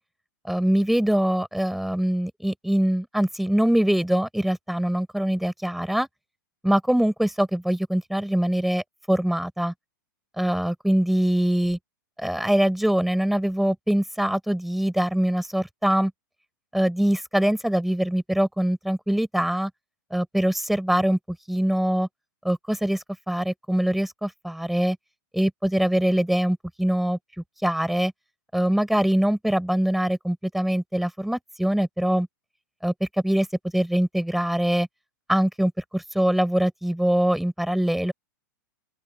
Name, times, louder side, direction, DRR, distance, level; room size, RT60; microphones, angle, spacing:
voice 1, 0.4-6.1 6.6-9.7 10.4-11.8 12.2-16.1 16.7-19.7 20.1-21.2 21.5-22.1 22.4-25.0 25.3-27.2 27.6-28.1 28.5-32.3 32.8-33.5 33.7-34.9 35.3-38.1, right 1 dB, ahead, 5.9 m, -23 dB
open air
hypercardioid pair, 145°, 11 cm